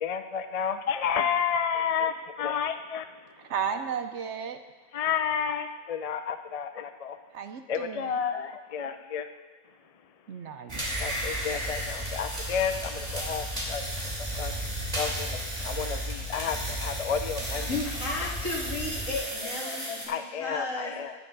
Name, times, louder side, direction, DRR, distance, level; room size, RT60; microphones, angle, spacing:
voice 1, 0.0-3.0 4.9-7.2 7.7-9.3 11.0-13.8 14.4-14.5 15.0-17.7 18.2-18.3 19.7-21.1, left 7 dB, 50° left, 8 dB, 0.4 m, -31 dB
voice 2, 3.4-4.6 7.3-8.2 10.3-11.1, right 7 dB, 65° right, 8 dB, 0.9 m, -34 dB
sound 1, 10.7-20.1, right 1 dB, 25° right, 3.0 m, -33 dB
voice 3, 17.7-20.9, left 2 dB, 70° left, -3 dB, 2.8 m, -34 dB
14.5 x 10.5 x 3.9 m, 1.2 s
omnidirectional pair, 1.4 m